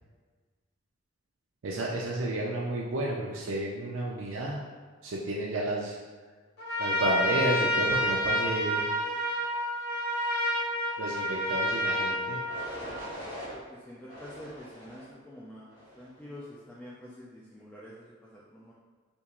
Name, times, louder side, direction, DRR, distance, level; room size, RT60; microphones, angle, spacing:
voice 1, 1.6-4.6 5.0-6.0 6.8-8.8 11.0-12.4, right 1 dB, 80° right, -3 dB, 0.5 m, -31 dB
Trumpet, 6.6-13.1, equal, 60° left, 0.9 m, -29 dB
sound 1, 11.5-11.9 12.5-13.6 14.1-15.1 15.7-16.1, equal, 25° left, 1.4 m, -43 dB
voice 2, 13.7-18.7, equal, 5° left, -7 dB, 0.3 m, -47 dB
3.5 x 2.8 x 2.9 m, 1.5 s
head